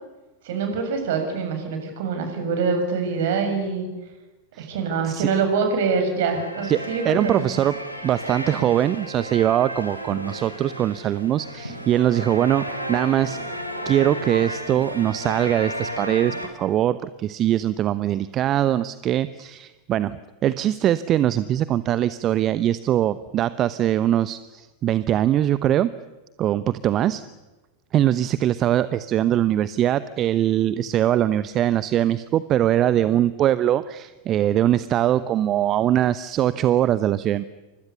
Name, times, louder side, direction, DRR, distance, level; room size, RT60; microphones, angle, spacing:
voice 1, 0.4-3.9 4.6-7.4, right 5 dB, 55° right, 5 dB, 7.3 m, -24 dB
sound 1, 6.1-16.5, equal, 90° right, 4.1 m, -33 dB
voice 2, 7.0-7.7 8.0-13.4 13.8-25.9 26.4-27.2 27.9-37.4, right 12 dB, 30° right, 15 dB, 0.9 m, -22 dB
29.5 x 25.5 x 6.9 m, 1.1 s
figure-of-eight pair, 90°, 0 cm